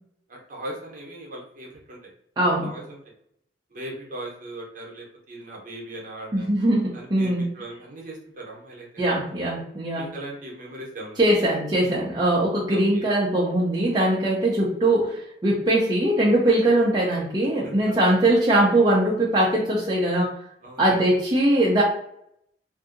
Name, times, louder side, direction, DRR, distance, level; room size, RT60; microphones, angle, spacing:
voice 1, 0.3-2.0 2.6-3.0 3.7-6.5 6.9-9.1 9.9-11.2 12.7-13.0 17.6-17.7 20.6-21.0, right 1 dB, 50° right, -2 dB, 0.8 m, -38 dB
voice 2, 2.4-2.7 6.3-7.5 9.0-10.1 11.2-20.4 20.8-21.8, right 1 dB, 25° right, -5 dB, 0.5 m, -21 dB
2.6 x 2.6 x 2.5 m, 0.74 s
head